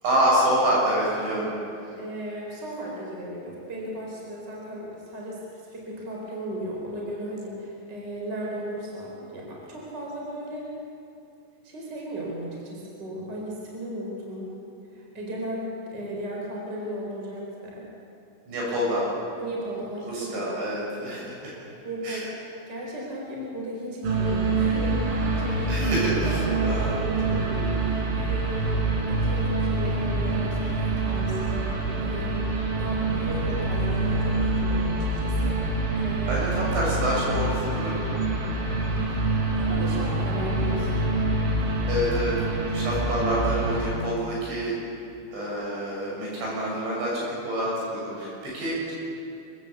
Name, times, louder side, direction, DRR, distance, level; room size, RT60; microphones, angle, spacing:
voice 1, 0.0-1.5 18.5-19.1 20.1-21.7 22.0-22.3 25.7-26.9 36.3-38.1 41.9-42.4 42.7-44.7 45.3-48.9, equal, 65° right, -5 dB, 8.9 m, -27 dB
voice 2, 1.3-1.6 2.0-10.7 11.6-14.5 14.9-17.9 19.4-20.5 21.0-21.3 21.8-22.4 22.7-32.4 32.8-36.4 36.6-36.8 39.0-41.1 42.7-42.9, equal, 20° right, -3 dB, 4.6 m, -36 dB
sound 1, 24.0-43.8, right 2 dB, 85° right, 6.1 m, -26 dB
25.5 x 15.0 x 8.3 m, 2.6 s
omnidirectional pair, 5.5 m